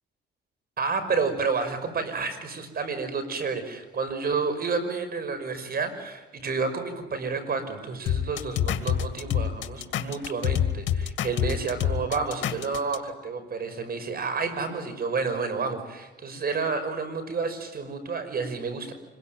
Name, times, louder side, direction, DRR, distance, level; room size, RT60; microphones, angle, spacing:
voice 1, 0.8-18.9, right 4 dB, 50° right, 9 dB, 5.7 m, -30 dB
sound 1, 8.1-13.0, left 9 dB, 70° left, 2.1 m, -26 dB
26.5 x 22.5 x 9.2 m, 1.1 s
cardioid pair, 90°, 20 cm